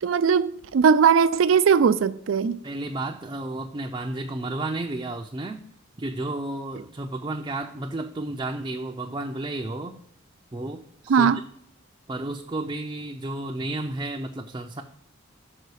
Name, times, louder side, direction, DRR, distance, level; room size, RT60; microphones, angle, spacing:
voice 1, 0.0-2.6 11.1-11.4, right 6 dB, 85° right, 0.4 m, -19 dB
voice 2, 2.6-5.6 6.0-10.0 10.5-11.3 12.1-14.8, right 2 dB, 25° right, 0.4 m, -32 dB
6.6 x 4.9 x 4.7 m
head